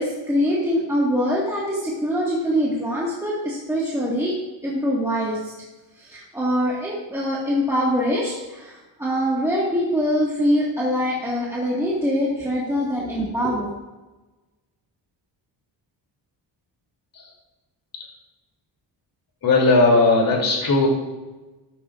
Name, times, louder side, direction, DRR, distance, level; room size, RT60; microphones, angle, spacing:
voice 1, 0.0-4.3 4.6-5.5 6.0-13.7, equal, 5° right, -6 dB, 1.7 m, -23 dB
voice 2, 19.4-20.9, left 3 dB, 50° left, -1 dB, 3.0 m, -17 dB
13.0 x 12.5 x 2.5 m, 1.1 s
wide cardioid pair, 160°, 45 cm